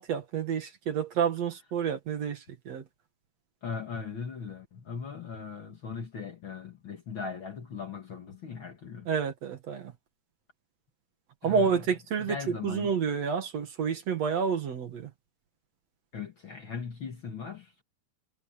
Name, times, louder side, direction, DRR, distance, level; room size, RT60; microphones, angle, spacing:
voice 1, 0.0-2.8 9.1-9.9 11.4-15.1, right 6 dB, 55° right, 2.5 m, -29 dB
voice 2, 3.6-9.1 11.4-11.9 12.2-12.9 16.1-17.8, left 5 dB, 45° left, 2.0 m, -39 dB
omnidirectional pair, 3.9 m